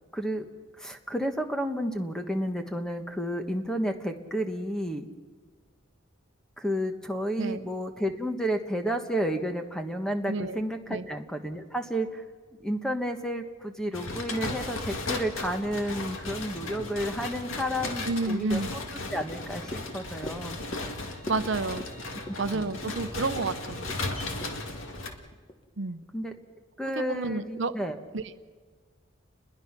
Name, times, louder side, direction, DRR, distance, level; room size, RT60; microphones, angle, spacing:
voice 1, 0.1-0.5 0.8-5.1 6.6-12.2 12.6-18.8 19.1-20.6 22.5-22.7 26.1-26.3 26.8-28.0, equal, 5° left, 5 dB, 1.3 m, -31 dB
voice 2, 10.3-10.6 10.9-11.1 18.0-18.7 21.3-21.8 22.4-23.9 25.8-26.0 27.0-27.7 28.1-28.2, right 3 dB, 60° right, 10 dB, 0.7 m, -30 dB
sound 1, 13.9-25.1, left 2 dB, 75° left, 2.1 m, -36 dB
sound 2, 19.2-25.6 26.0-26.1, equal, 25° left, 1.2 m, -45 dB
sound 3, 19.3-25.0, equal, 50° left, 7.3 m, -51 dB
29.5 x 21.5 x 6.0 m, 1.5 s
head